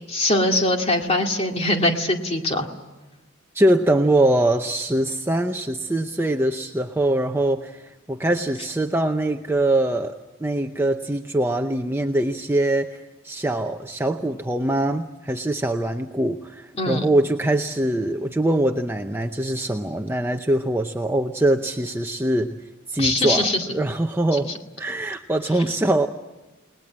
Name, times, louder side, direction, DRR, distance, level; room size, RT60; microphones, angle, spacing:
voice 1, 0.1-2.7 16.8-17.0 23.0-23.7 24.4-24.5, left 1 dB, 30° left, 3 dB, 2.3 m, -22 dB
voice 2, 3.5-13.0 13.2-22.5 22.9-26.1, right 1 dB, 10° right, 4 dB, 0.7 m, -23 dB
30.0 x 20.0 x 7.5 m, 1.1 s
head